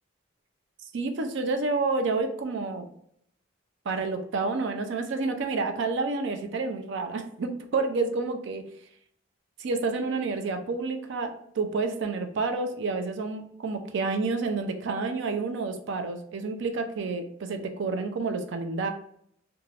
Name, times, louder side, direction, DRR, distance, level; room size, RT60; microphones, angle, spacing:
voice 1, 0.9-2.9 3.9-8.6 9.6-18.9, right 3 dB, 60° right, 6 dB, 0.4 m, -29 dB
3.2 x 2.2 x 2.4 m, 0.69 s
head